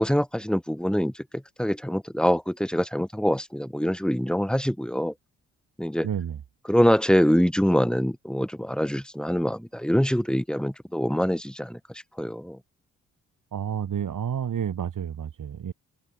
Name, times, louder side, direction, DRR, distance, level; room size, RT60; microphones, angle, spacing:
voice 1, 0.0-5.1 5.8-6.1 6.7-12.6, equal, ahead, 7.9 m, -24 dB
voice 2, 6.0-6.4 13.5-15.7, right 8 dB, 65° right, 3.8 m, -30 dB
supercardioid pair, 50°, 35 cm